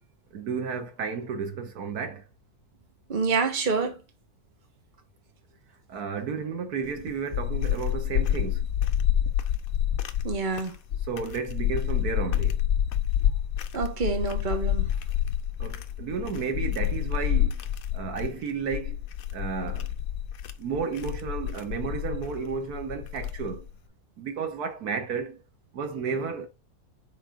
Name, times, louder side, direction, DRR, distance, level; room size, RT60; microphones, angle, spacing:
voice 1, 0.3-2.2 5.9-8.7 11.1-12.5 15.6-17.6 17.9-19.0 19.3-19.9 20.6-23.7 24.2-25.4 25.7-26.5, right 5 dB, 85° right, 1.6 m, -32 dB
voice 2, 3.1-4.0 10.2-10.8 13.7-14.9, right 4 dB, 35° right, 1.3 m, -27 dB
sound 1, 6.9-23.7, left 10 dB, 70° left, 1.1 m, -28 dB
6.6 x 3.9 x 5.0 m
omnidirectional pair, 1.6 m